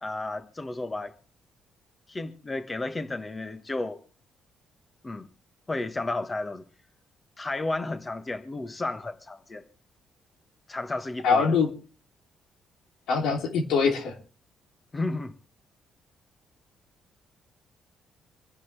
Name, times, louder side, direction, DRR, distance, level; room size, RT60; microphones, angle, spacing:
voice 1, 0.0-1.1 2.1-4.0 5.0-5.3 5.7-6.6 7.4-9.6 10.7-11.5 14.9-15.3, left 2 dB, 25° left, 1.3 m, -32 dB
voice 2, 11.2-11.7 13.1-14.1, left 5 dB, 85° left, 3.0 m, -23 dB
26.0 x 10.5 x 3.4 m
cardioid pair, 90°, 0 cm